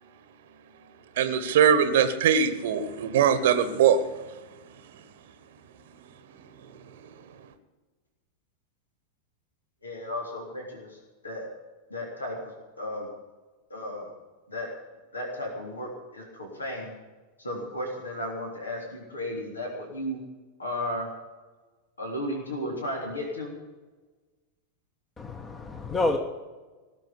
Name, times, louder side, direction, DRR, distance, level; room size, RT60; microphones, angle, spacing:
voice 1, 1.2-4.0, right 8 dB, 55° right, 13 dB, 1.2 m, -21 dB
voice 2, 9.8-11.0 11.2-11.5 11.9-12.4 12.8-13.1 13.7-14.1 14.5-14.7 15.1-16.9 17.4-20.2 20.6-21.1 22.0-23.5, left 1 dB, 75° left, 0 dB, 3.4 m, -34 dB
voice 3, 25.2-26.2, left 2 dB, 15° left, 6 dB, 1.3 m, -28 dB
18.0 x 7.3 x 9.7 m, 1.3 s
figure-of-eight pair, 90°, 0 cm